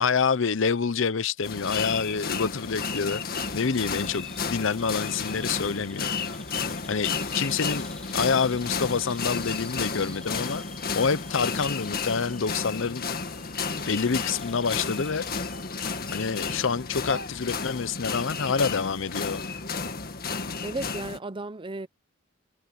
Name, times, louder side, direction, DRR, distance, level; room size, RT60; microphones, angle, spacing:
voice 1, 0.0-3.2 3.5-6.1 6.9-7.9 8.1-10.6 10.9-13.1 13.9-15.3 16.1-19.4, left 5 dB, 65° left, 0.7 m, -27 dB
sound 1, 1.4-21.2, left 5 dB, 45° left, 1.9 m, -32 dB
Bird vocalization bird call bird song, 2.8-16.7, left 1 dB, 5° left, 1.8 m, -50 dB
voice 2, 20.6-21.9, right 2 dB, 25° right, 0.7 m, -34 dB
head